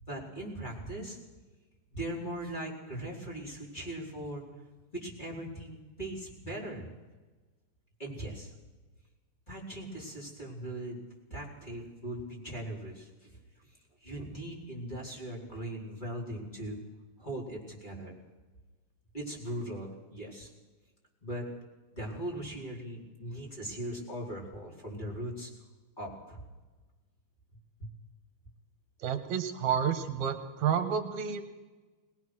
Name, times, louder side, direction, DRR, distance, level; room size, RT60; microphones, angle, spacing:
voice 1, 0.1-1.2 1.9-4.4 4.9-6.9 8.0-8.5 9.5-11.0 11.3-13.4 13.7-16.8 17.2-18.1 19.1-20.5 21.2-21.5 21.9-25.5 26.0-26.4 27.8-27.9, right 1 dB, 15° left, -3 dB, 4.5 m, -39 dB
voice 2, 29.0-31.4, right 7 dB, 70° right, 9 dB, 2.6 m, -30 dB
21.5 x 19.5 x 6.3 m, 1.2 s
omnidirectional pair, 3.5 m